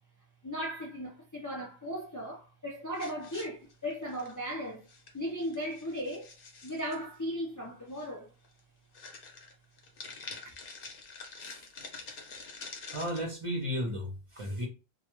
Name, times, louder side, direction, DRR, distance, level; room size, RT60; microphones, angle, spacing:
voice 1, 0.4-4.9 5.1-6.3 6.6-8.3 10.4-10.5, equal, 30° left, 0.3 m, -37 dB
sound 1, 2.9-4.5 4.9-5.1 5.4-7.0 7.9-8.1 8.4-8.6 8.9-13.2, left 4 dB, 65° left, 0.8 m, -46 dB
voice 2, 12.9-14.7, equal, 40° right, 0.6 m, -34 dB
2.2 x 2.1 x 2.9 m
omnidirectional pair, 1.0 m